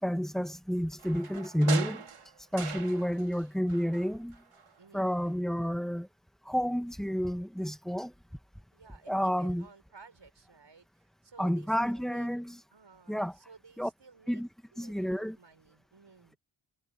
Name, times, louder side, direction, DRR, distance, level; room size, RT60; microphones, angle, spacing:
voice 1, 0.0-2.0 2.5-4.3 4.9-6.1 6.5-8.1 9.1-9.6 11.4-12.6 13.1-13.3 13.8-13.9 14.3-14.5 14.8-15.3, equal, ahead, 1.5 m, -30 dB
sound 1, 1.0-3.4 3.7-4.8 5.1-5.2, right 6 dB, 75° right, 3.4 m, -40 dB
voice 2, 2.6-3.4 4.8-5.2 8.7-12.3 12.7-14.5 14.7-16.4, right 4 dB, 60° right, 7.1 m, -56 dB
cardioid pair, 50°, 50 cm